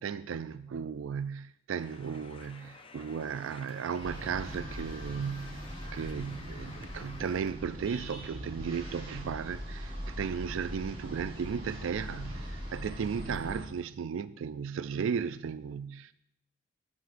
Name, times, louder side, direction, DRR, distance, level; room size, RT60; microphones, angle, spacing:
voice 1, 0.0-16.1, right 6 dB, 75° right, 0.3 m, -35 dB
sound 1, 1.8-7.5, left 4 dB, 25° left, 0.5 m, -52 dB
sound 2, 4.0-13.6, equal, 30° right, 3.9 m, -41 dB
14.0 x 9.5 x 2.5 m
head